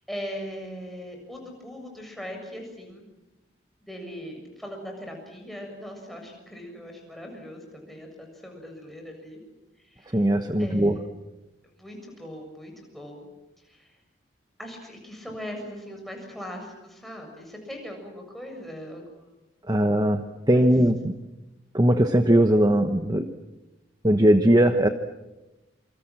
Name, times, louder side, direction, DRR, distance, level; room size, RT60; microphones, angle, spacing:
voice 1, 0.1-3.1 3.9-9.4 9.8-10.2 10.6-11.0 11.8-13.3 13.6-13.9 14.6-19.3 20.5-20.7, equal, ahead, 1 dB, 7.2 m, -40 dB
voice 2, 10.1-11.0 19.7-21.1 21.7-23.3 24.0-24.9, right 1 dB, 20° right, 7 dB, 1.1 m, -20 dB
27.5 x 26.5 x 7.5 m, 1.0 s
head